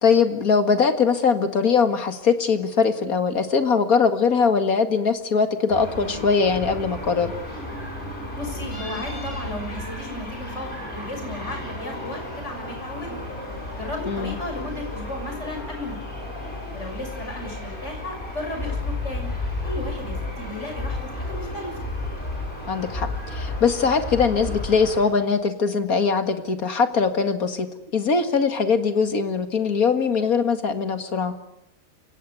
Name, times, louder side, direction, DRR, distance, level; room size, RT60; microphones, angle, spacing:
voice 1, 0.0-7.3 14.1-14.4 22.7-27.7 27.9-31.3, left 5 dB, 75° left, 8 dB, 2.4 m, -21 dB
sound 1, 5.7-25.0, left 2 dB, 35° left, 7.9 m, -33 dB
voice 2, 8.3-13.2 13.8-16.4 16.7-19.3 19.6-21.7, left 1 dB, 50° left, 3 dB, 6.8 m, -34 dB
29.0 x 17.0 x 9.6 m, 0.85 s
omnidirectional pair, 1.5 m